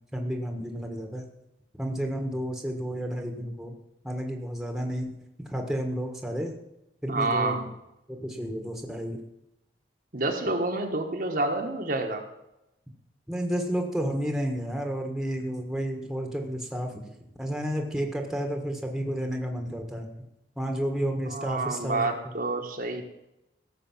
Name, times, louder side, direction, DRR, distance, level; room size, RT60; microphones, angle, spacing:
voice 1, 0.1-1.3 1.8-3.7 4.0-5.1 5.5-6.5 7.0-7.7 8.1-9.2 13.3-17.1 17.4-20.1 20.6-22.1, equal, ahead, 3 dB, 1.6 m, -31 dB
voice 2, 7.1-7.6 10.1-12.2 21.3-23.0, right 2 dB, 45° right, 3 dB, 1.4 m, -28 dB
16.5 x 7.0 x 7.3 m, 0.89 s
head